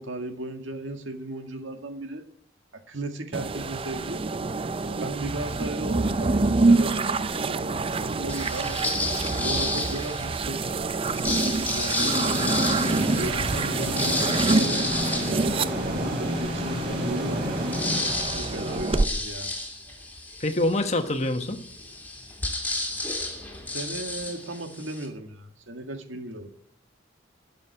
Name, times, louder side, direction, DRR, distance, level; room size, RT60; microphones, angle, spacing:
voice 1, 0.0-2.2 2.7-4.3 4.9-8.9 9.3-10.6 11.1-12.2 12.8-14.9 15.3-17.5 18.3-19.5 23.7-26.5, right 2 dB, 90° right, 5 dB, 1.9 m, -36 dB
sound 1, 3.3-19.1, right 3 dB, 30° right, 0.5 m, -26 dB
sound 2, 8.3-10.4 11.0-16.2 16.7-16.8 17.0-25.1, left 2 dB, 10° left, 2.7 m, -32 dB
sound 3, 12.0-18.7, left 1 dB, 50° right, 7.1 m, -31 dB
voice 2, 20.4-21.6, left 1 dB, 35° left, 7 dB, 1.3 m, -25 dB
12.5 x 7.6 x 9.8 m, 0.64 s
head